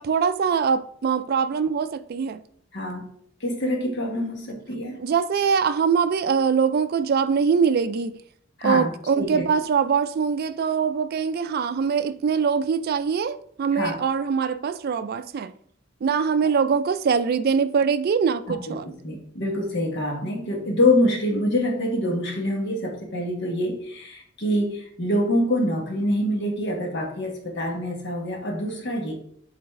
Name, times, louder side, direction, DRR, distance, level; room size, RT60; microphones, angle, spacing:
voice 1, 0.0-2.4 3.9-4.0 5.0-8.1 8.6-15.5 16.0-18.9, right 6 dB, 50° right, 0.4 m, -23 dB
voice 2, 2.7-3.0 3.4-5.0 8.6-9.4 13.7-14.0 18.5-29.1, left 1 dB, 60° left, 1.4 m, -25 dB
7.8 x 4.0 x 3.6 m
head